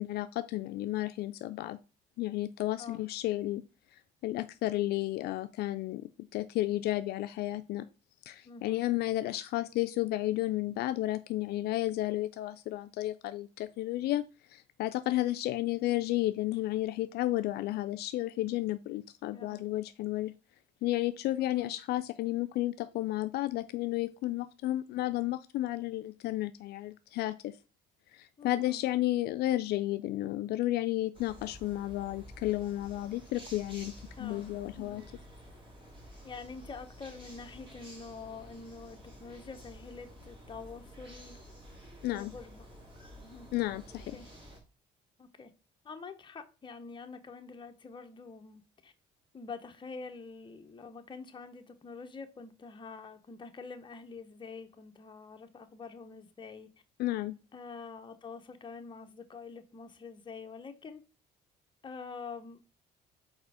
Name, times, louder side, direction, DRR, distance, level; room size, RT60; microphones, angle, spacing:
voice 1, 0.0-1.8 2.2-3.6 4.2-6.0 6.3-7.9 8.3-14.2 14.5-20.3 20.8-27.5 28.1-33.9 34.2-35.0 42.0-42.3 43.5-44.2 57.0-57.3, left 16 dB, 70° left, 0.4 m, -32 dB
voice 2, 8.4-8.8 19.3-19.6 21.4-21.7 28.4-28.8 34.2-34.5 34.7-35.0 36.2-41.4 42.1-42.7 43.2-43.5 44.1-44.3 45.2-45.5 45.8-48.9 49.3-56.7 57.5-61.0 61.8-62.6, left 4 dB, 30° left, 0.9 m, -46 dB
sound 1, 31.1-44.6, equal, 30° right, 2.8 m, -51 dB
4.8 x 4.4 x 4.8 m
cardioid pair, 110°, 17 cm